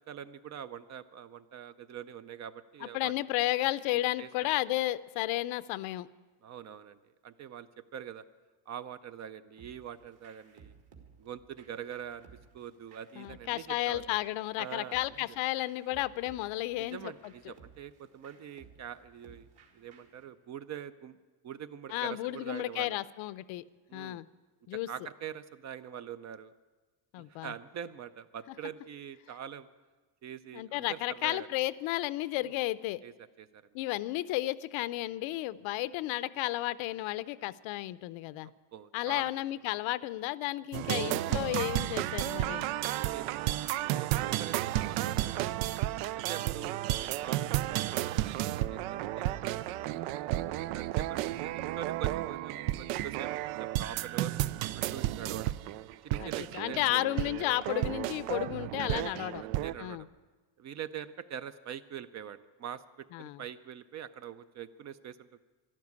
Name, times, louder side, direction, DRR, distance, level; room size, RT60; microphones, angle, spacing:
voice 1, 0.1-3.1 3.9-4.5 6.4-8.2 8.7-10.7 11.2-12.3 12.5-14.0 14.6-15.2 16.8-19.5 19.7-21.2 21.4-23.0 23.9-24.2 24.9-26.5 27.2-29.7 30.2-31.5 32.4-32.5 33.0-33.7 38.7-39.3 42.8-45.6 46.1-49.4 50.0-50.4 50.7-54.3 54.9-55.5 56.0-57.0 58.5-59.1 59.4-60.1 60.6-65.4, right 9 dB, 35° right, 14 dB, 0.4 m, -44 dB
voice 2, 2.8-6.1 13.2-17.1 21.9-23.6 23.9-24.3 24.7-24.9 27.1-27.5 30.5-33.0 33.7-38.5 38.9-42.6 56.2-59.4 59.8-60.0 63.1-63.4, left 17 dB, 70° left, 17 dB, 0.6 m, -33 dB
sound 1, 9.6-20.2, right 6 dB, 55° right, 2.4 m, -58 dB
sound 2, 40.7-59.7, right 15 dB, 90° right, 0.6 m, -32 dB
12.0 x 12.0 x 9.5 m, 1.3 s
cardioid pair, 140°, 49 cm